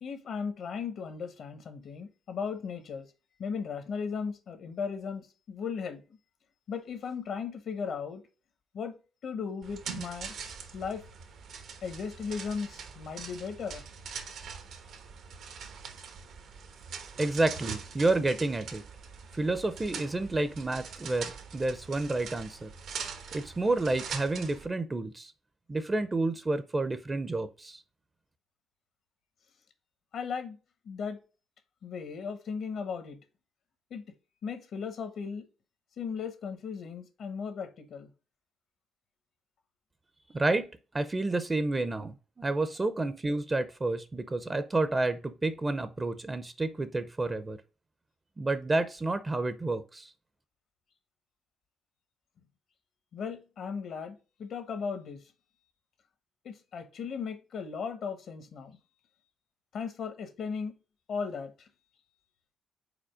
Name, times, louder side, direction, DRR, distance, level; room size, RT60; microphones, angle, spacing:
voice 1, 0.0-3.0 3.4-6.0 6.7-8.2 8.7-9.0 9.2-10.3 10.7-11.0 11.8-13.8 30.1-30.6 30.8-31.2 31.8-33.2 33.9-34.0 34.4-35.4 36.0-38.1 53.1-55.2 56.4-58.8 59.7-60.7 61.1-61.7, left 6 dB, 70° left, 1.1 m, -36 dB
sound 1, 9.6-24.7, right 6 dB, 70° right, 1.1 m, -43 dB
voice 2, 17.2-18.8 19.3-22.7 23.3-25.3 25.7-27.8 40.3-40.7 40.9-47.6 48.4-50.1, right 2 dB, 20° right, 0.6 m, -30 dB
5.1 x 4.2 x 5.0 m
cardioid pair, 100°, 0 cm